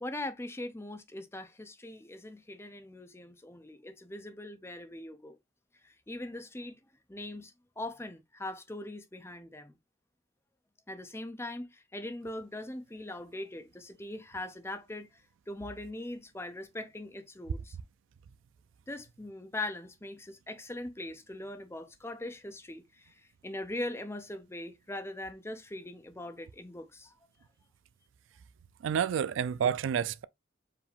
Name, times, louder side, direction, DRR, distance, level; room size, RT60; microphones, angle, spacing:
voice 1, 0.0-5.4 5.8-6.8 7.1-9.8 10.9-17.8 18.9-27.1, left 1 dB, 10° left, 0.6 m, -41 dB
voice 2, 28.8-30.2, right 8 dB, 70° right, 0.3 m, -29 dB
4.7 x 2.7 x 3.4 m
head